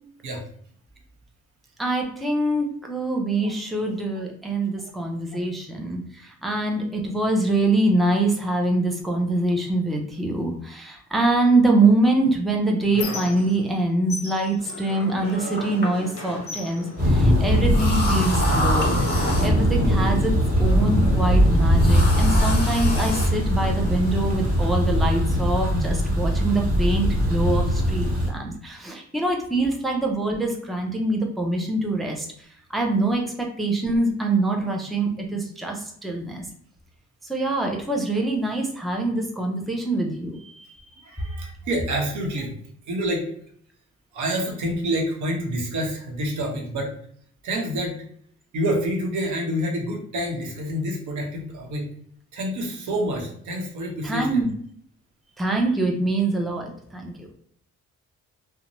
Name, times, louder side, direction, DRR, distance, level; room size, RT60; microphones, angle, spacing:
voice 1, 1.8-20.3 20.6-36.5 37.2-41.0 54.0-54.5 55.4-57.3, right 2 dB, ahead, 1 dB, 0.5 m, -24 dB
Squeak, 12.0-13.8 14.1-15.8 16.1-17.8 18.6-18.7 19.1-20.1, left 5 dB, 50° left, 0.7 m, -38 dB
sound 1, 14.6-24.8, left 1 dB, 35° left, 1.2 m, -32 dB
Thunder, 17.0-28.3, equal, 30° right, 1.5 m, -21 dB
voice 2, 41.0-42.5 42.9-43.3 44.1-46.9 47.4-48.0 48.5-51.9 52.3-54.5, equal, 75° right, 0 dB, 0.9 m, -27 dB
2.6 x 2.2 x 2.9 m, 0.63 s
cardioid pair, 90°, 30 cm